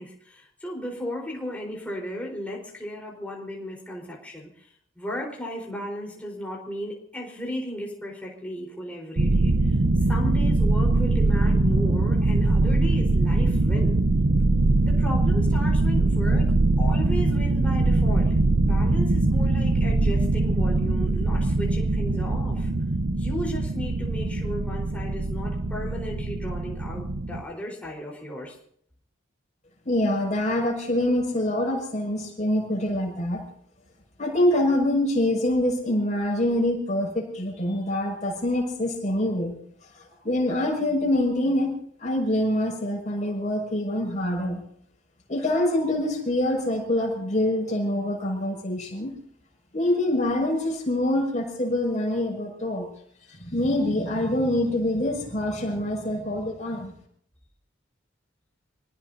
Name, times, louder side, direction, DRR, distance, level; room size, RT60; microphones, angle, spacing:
voice 1, 0.0-9.8 10.0-14.0 14.8-16.5 16.8-22.7 23.1-28.6, equal, 5° left, -2 dB, 4.4 m, -35 dB
sound 1, 9.2-27.4, right 2 dB, 55° right, 0.8 m, -22 dB
voice 2, 29.8-33.4 34.2-39.5 40.0-41.7 42.0-44.6 45.3-49.1 49.7-52.9 53.4-56.9, left 1 dB, 35° left, 0 dB, 6.3 m, -25 dB
27.5 x 19.0 x 2.8 m, 0.66 s
head